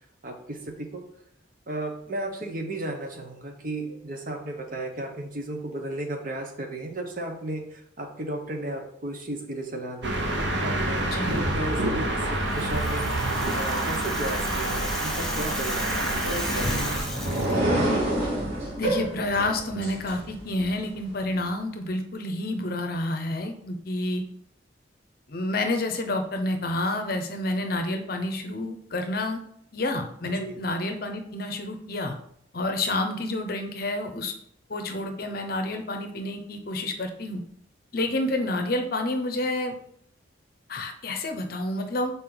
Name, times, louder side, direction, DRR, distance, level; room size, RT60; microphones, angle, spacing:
voice 1, 0.2-1.0 1.7-13.1 13.5-17.2 30.2-30.6, right 1 dB, 45° right, 3 dB, 1.0 m, -34 dB
sound 1, 10.0-17.0, right 1 dB, 70° right, 0.9 m, -27 dB
voice 2, 11.0-11.4 18.8-24.2 25.3-29.4 29.7-32.1 32.5-34.3 34.7-37.4 37.9-39.8 40.7-42.1, left 2 dB, 50° left, 5 dB, 0.7 m, -29 dB
Rattle (instrument), 12.3-17.6, left 2 dB, 5° left, 0.6 m, -36 dB
sound 2, 16.0-20.7, right 1 dB, 85° right, 2.5 m, -28 dB
6.3 x 4.2 x 3.9 m, 0.68 s
head